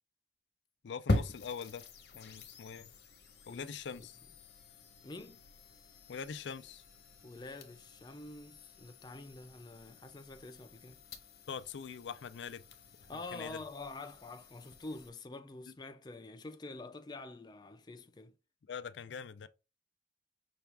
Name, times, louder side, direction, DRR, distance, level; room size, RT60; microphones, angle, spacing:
voice 1, 0.8-1.8 2.1-2.9 3.5-4.1 6.1-6.8 11.5-12.6 13.0-13.6 18.7-19.5, left 6 dB, 90° left, 0.4 m, -43 dB
sound 1, 1.1-15.1, left 2 dB, 65° left, 0.9 m, -43 dB
voice 2, 3.5-4.1 5.0-5.4 7.2-11.0 13.1-18.3, left 2 dB, 25° left, 0.4 m, -47 dB
5.7 x 2.4 x 3.4 m
head